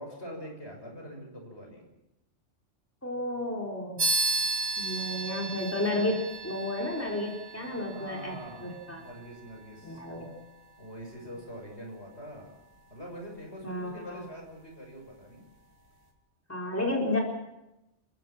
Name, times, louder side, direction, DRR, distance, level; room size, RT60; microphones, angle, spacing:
voice 1, 0.0-1.8 7.6-10.0 10.8-12.5 12.9-15.4, equal, 60° left, 1 dB, 6.5 m, -44 dB
voice 2, 3.0-4.0 4.8-6.2 6.4-9.0 9.8-10.3 13.6-14.2 16.5-17.2, left 1 dB, 10° left, -1 dB, 4.0 m, -32 dB
sound 1, 4.0-14.0, right 2 dB, 60° right, 3.5 m, -36 dB
29.0 x 15.5 x 7.3 m, 0.94 s
omnidirectional pair, 1.2 m